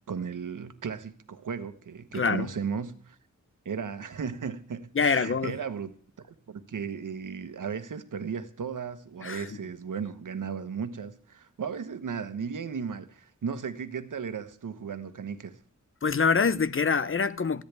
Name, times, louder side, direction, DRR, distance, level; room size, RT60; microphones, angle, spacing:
voice 1, 0.1-3.2 3.6-5.9 6.2-15.6, right 6 dB, 90° right, 1.3 m, -35 dB
voice 2, 2.1-2.5 4.9-5.6 9.2-9.5 16.0-17.6, left 5 dB, 45° left, 0.8 m, -25 dB
19.0 x 15.0 x 3.5 m
wide cardioid pair, 100°, 31 cm